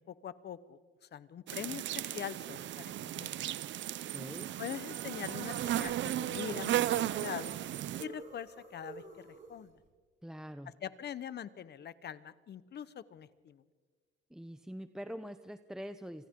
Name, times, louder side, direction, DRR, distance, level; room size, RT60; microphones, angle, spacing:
voice 1, 0.0-3.5 4.6-7.6 8.0-9.0 9.5-9.7 10.8-13.6, left 9 dB, 60° left, 14 dB, 1.2 m, -43 dB
sound 1, 1.5-8.0, right 13 dB, 70° right, 0.6 m, -35 dB
voice 2, 4.1-4.5 10.2-10.7 14.3-16.3, equal, 5° right, 9 dB, 0.8 m, -44 dB
sound 2, 6.3-9.9, right 3 dB, 40° right, 6.2 m, -52 dB
26.5 x 26.5 x 3.9 m, 1.5 s
cardioid pair, 90°, 20 cm